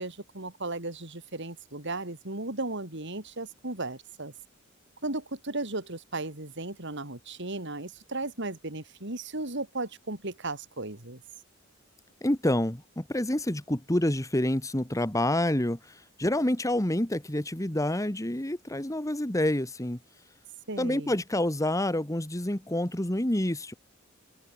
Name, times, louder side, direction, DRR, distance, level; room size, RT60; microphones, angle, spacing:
voice 1, 0.0-4.3 5.0-11.2 20.7-21.1, right 2 dB, 60° right, 4.1 m, -35 dB
voice 2, 12.2-20.0 20.8-23.7, left 1 dB, 15° left, 1.6 m, -28 dB
open air
head